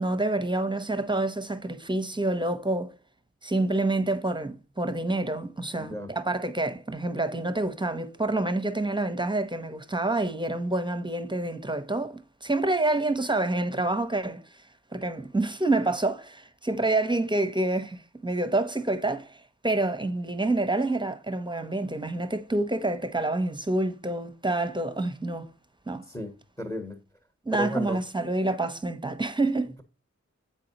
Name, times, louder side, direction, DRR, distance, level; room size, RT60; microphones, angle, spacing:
voice 1, 0.0-2.9 3.4-14.6 14.9-25.5 25.9-26.0 27.4-29.7, right 2 dB, 15° right, 0.8 m, -28 dB
voice 2, 5.7-6.1 26.1-27.0 27.5-28.0, equal, 15° left, 1.2 m, -34 dB
7.5 x 4.6 x 2.9 m
wide cardioid pair, 55°, 29 cm